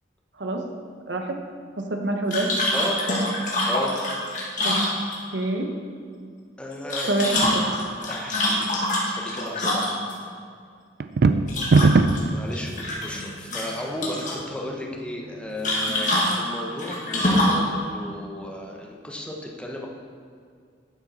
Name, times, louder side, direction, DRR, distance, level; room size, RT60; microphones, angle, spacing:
voice 1, 1.8-2.5 3.5-3.6 4.6-4.8 5.3-5.7 7.1-7.6, right 2 dB, 80° right, 3 dB, 1.0 m, -26 dB
sound 1, 2.3-5.4 6.7-10.2 11.5-12.2 12.5-13.2 13.5-14.4 15.6-17.7, left 1 dB, 45° left, 1.8 m, -25 dB
voice 2, 3.6-4.0 6.6-7.5 8.1-9.9 12.2-19.9, left 1 dB, 5° left, -1 dB, 1.0 m, -34 dB
sound 2, 11.0-12.3, right 3 dB, 65° right, 0.4 m, -17 dB
11.5 x 6.4 x 4.2 m, 2.2 s
head